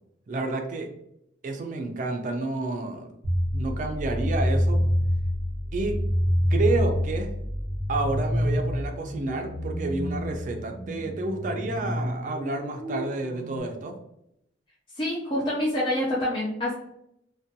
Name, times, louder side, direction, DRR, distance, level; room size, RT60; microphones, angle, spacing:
voice 1, 0.3-0.9 1.4-3.1 3.5-4.9 5.7-6.0 6.5-7.3 7.9-13.9, right 2 dB, 45° right, 4 dB, 0.3 m, -30 dB
sound 1, 3.2-13.6, equal, 75° left, 0.9 m, -27 dB
voice 2, 15.0-16.7, left 1 dB, 25° left, -6 dB, 0.4 m, -26 dB
2.5 x 2.2 x 2.6 m, 0.78 s
head